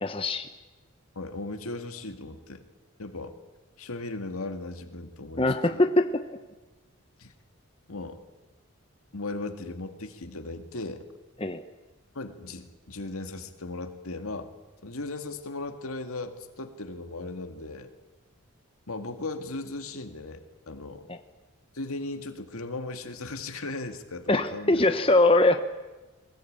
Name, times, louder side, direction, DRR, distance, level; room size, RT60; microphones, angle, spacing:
voice 1, 0.0-0.5 5.4-6.2 11.4-11.6 21.1-21.2 24.3-25.6, left 2 dB, 25° left, 7 dB, 0.9 m, -22 dB
voice 2, 1.2-2.6 3.0-3.4 3.8-5.8 7.2-7.3 7.9-8.2 9.1-11.0 12.1-14.5 14.8-17.9 18.9-21.1 21.7-24.8, left 2 dB, 85° left, 6 dB, 2.0 m, -37 dB
22.0 x 20.0 x 8.7 m, 1.2 s
head